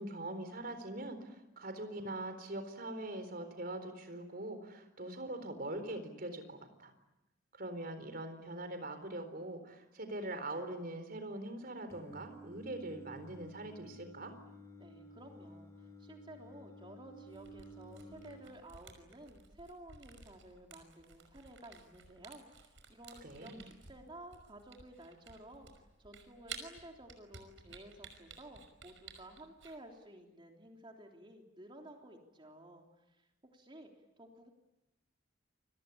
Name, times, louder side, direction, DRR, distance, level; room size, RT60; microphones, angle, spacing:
voice 1, 0.0-6.9 7.5-14.3 23.2-23.7, right 1 dB, 50° right, 9 dB, 4.2 m, -42 dB
Singing, 11.9-18.4, right 1 dB, 15° left, 5.1 m, -53 dB
voice 2, 14.8-33.9 34.2-34.5, right 1 dB, 25° right, 2 dB, 3.3 m, -54 dB
Camera, 17.3-29.8, right 6 dB, 80° right, 5.5 m, -54 dB
29.0 x 23.5 x 8.6 m, 0.93 s
head